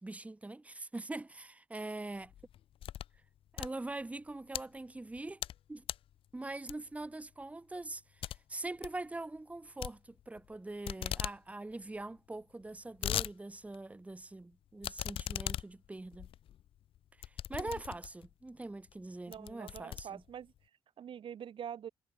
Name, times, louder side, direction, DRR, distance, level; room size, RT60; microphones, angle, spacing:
voice 1, 0.0-2.3 3.5-5.8 6.3-16.3 17.2-20.2, right 2 dB, 15° right, 1.3 m, -43 dB
sound 1, 2.2-3.2 3.5-4.6 5.1-5.6 5.8-6.1 6.7-7.1 7.4-7.5 7.8-7.9 8.2-8.4 8.7-9.0 9.8-10.5 10.8-11.4 11.7-11.8 12.0-12.1 12.6-13.3 13.7-13.8 14.8-18.3 18.9-19.0 19.3-20.6, left 11 dB, 80° left, 0.4 m, -39 dB
voice 2, 19.3-20.5 21.0-21.9, right 9 dB, 70° right, 1.2 m, -45 dB
cardioid pair, 100°, 9 cm